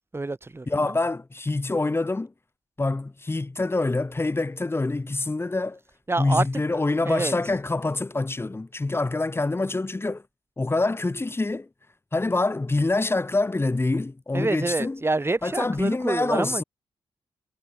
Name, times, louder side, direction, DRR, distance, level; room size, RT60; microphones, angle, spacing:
voice 1, 0.1-1.0 6.1-6.5 7.1-7.3 14.3-16.6, right 2 dB, 25° right, 5.9 m, -27 dB
voice 2, 0.7-2.3 2.8-5.8 6.2-10.2 10.6-11.7 12.1-15.0 15.4-16.6, left 2 dB, 25° left, 5.0 m, -26 dB
cardioid pair, 85°, 10 cm